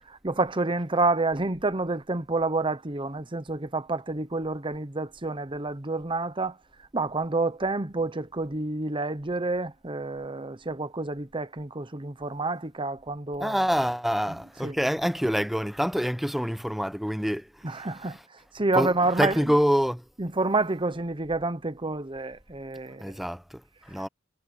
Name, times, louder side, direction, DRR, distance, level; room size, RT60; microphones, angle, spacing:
voice 1, 0.1-6.6 6.9-13.6 14.6-14.8 17.6-18.2 18.5-19.4 20.2-23.2, right 3 dB, 25° right, 1.0 m, -28 dB
voice 2, 13.4-17.9 18.7-20.0 23.0-24.1, equal, ahead, 0.8 m, -26 dB
head